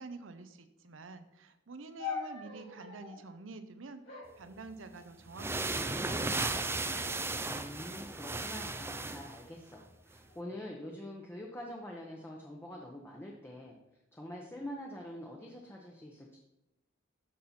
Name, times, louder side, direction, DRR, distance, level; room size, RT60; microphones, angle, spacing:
voice 1, 0.0-7.3, right 3 dB, 85° right, 10 dB, 0.7 m, -48 dB
sound 1, 2.0-3.2 4.0-5.3 6.0-6.5 6.9-7.5 8.1-9.4 10.2-10.7, left 6 dB, 65° left, 2.9 m, -45 dB
sound 2, 4.7-4.8 5.3-9.4, right 3 dB, 15° right, 0.4 m, -35 dB
voice 2, 7.4-13.8 14.1-16.4, left 1 dB, 10° left, -1 dB, 0.8 m, -45 dB
12.5 x 4.2 x 4.3 m, 0.94 s
head